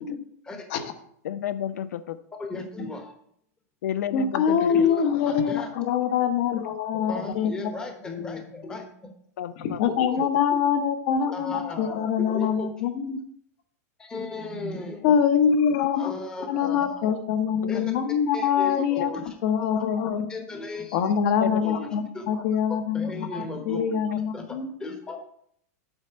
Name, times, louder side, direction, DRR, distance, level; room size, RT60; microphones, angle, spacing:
voice 1, 0.4-0.9 2.4-3.1 4.7-4.9 5.3-5.7 7.1-9.1 10.5-10.6 11.3-12.7 14.0-15.1 16.0-17.1 17.7-17.9 18.3-19.3 20.3-21.0 21.6-22.4 22.7-23.9 24.3-24.4 24.8-25.2, left 2 dB, 10° left, 4 dB, 0.9 m, -36 dB
voice 2, 1.2-2.2 3.8-4.6 9.4-9.8 17.0-17.1 17.7-17.8 21.4-21.6, left 10 dB, 90° left, 13 dB, 0.5 m, -31 dB
voice 3, 4.1-7.5 8.1-8.4 9.6-13.2 15.0-16.1 16.5-19.1 19.4-20.3 20.9-24.7, left 7 dB, 40° left, 9 dB, 0.9 m, -24 dB
8.0 x 4.2 x 6.8 m, 0.66 s
supercardioid pair, 175°, 9 cm